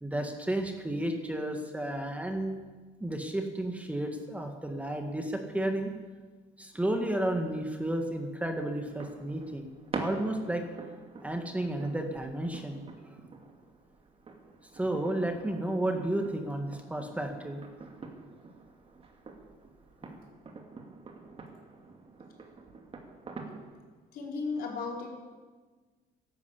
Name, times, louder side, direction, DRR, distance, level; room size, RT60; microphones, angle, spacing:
voice 1, 0.0-2.6 3.0-5.9 6.6-9.7 10.0-10.6 11.2-12.8 14.7-17.6 20.0-20.1, right 1 dB, 10° right, 4 dB, 1.8 m, -32 dB
sound 1, 8.8-23.8, right 3 dB, 35° right, 2.5 m, -45 dB
voice 2, 24.1-25.1, left 4 dB, 60° left, -1 dB, 4.6 m, -35 dB
14.0 x 11.5 x 8.5 m, 1.4 s
cardioid pair, 110°, 17 cm